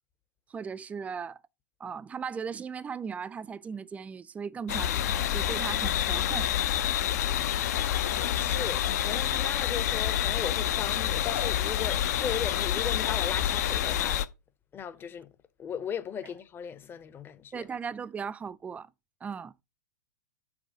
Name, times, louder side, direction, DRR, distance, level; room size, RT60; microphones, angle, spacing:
voice 1, 0.5-1.4 1.8-6.5 17.5-18.9 19.2-19.5, right 6 dB, 15° right, 0.4 m, -37 dB
sound 1, 4.7-14.3, left 11 dB, 60° left, 0.7 m, -28 dB
voice 2, 7.8-14.2 14.7-15.3 15.6-17.6, left 8 dB, 20° left, 0.8 m, -37 dB
6.2 x 4.5 x 6.2 m
hypercardioid pair, 105°, 10 cm